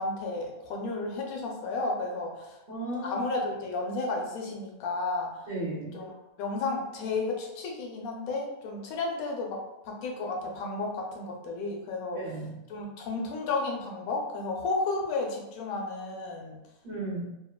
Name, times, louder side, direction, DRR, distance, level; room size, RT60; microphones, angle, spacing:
voice 1, 0.0-2.6 3.0-5.3 5.9-6.1 6.4-9.6 9.8-12.2 12.7-16.6, left 3 dB, 85° left, 0 dB, 1.1 m, -32 dB
voice 2, 2.7-3.2 5.5-6.0 12.1-12.5 16.8-17.3, right 2 dB, 40° right, -8 dB, 1.0 m, -34 dB
3.1 x 2.1 x 2.2 m, 0.94 s
omnidirectional pair, 1.5 m